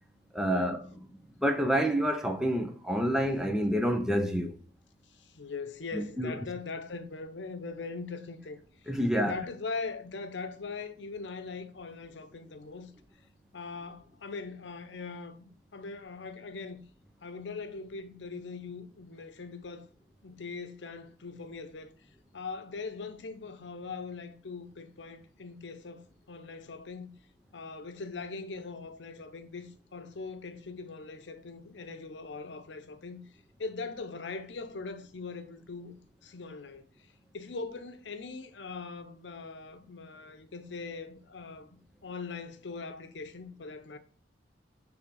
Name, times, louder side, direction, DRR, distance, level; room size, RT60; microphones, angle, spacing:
voice 1, 0.3-0.8 1.4-4.5 5.9-6.4 8.9-9.3, equal, 5° right, 0.7 m, -28 dB
voice 2, 5.1-12.9 13.5-16.8 17.2-19.9 20.2-21.9 22.3-27.1 27.5-33.2 33.6-36.9 37.3-44.0, left 4 dB, 85° left, 0.7 m, -41 dB
6.3 x 3.5 x 4.7 m
head